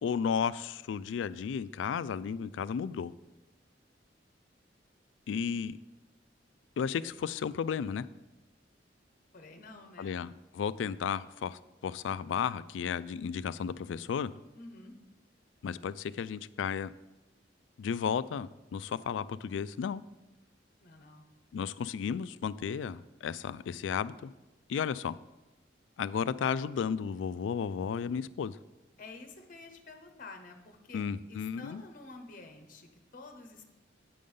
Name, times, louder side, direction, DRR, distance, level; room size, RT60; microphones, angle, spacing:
voice 1, 0.0-3.1 5.3-5.8 6.8-8.1 10.0-14.3 15.6-16.9 17.8-20.0 21.5-24.3 24.7-25.2 26.0-28.6 30.9-31.8, left 7 dB, 90° left, 17 dB, 0.3 m, -33 dB
voice 2, 9.3-10.2 14.5-15.0 20.8-21.2 29.0-33.6, left 3 dB, 50° left, 5 dB, 0.9 m, -50 dB
8.5 x 5.2 x 5.4 m, 1.0 s
head